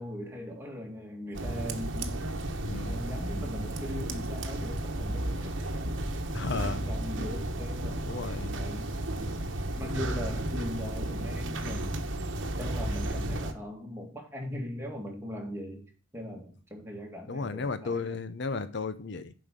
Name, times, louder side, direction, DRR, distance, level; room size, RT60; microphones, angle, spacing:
voice 1, 0.0-2.3 2.8-6.0 6.4-9.3 9.7-12.1 12.6-18.2, left 1 dB, 10° right, 2.1 m, -40 dB
sound 1, 1.3-13.5, right 1 dB, 65° right, 1.1 m, -33 dB
voice 2, 2.6-3.0 6.3-6.8 8.1-8.6 17.3-19.3, left 4 dB, 60° left, 0.6 m, -34 dB
7.5 x 5.1 x 7.2 m
head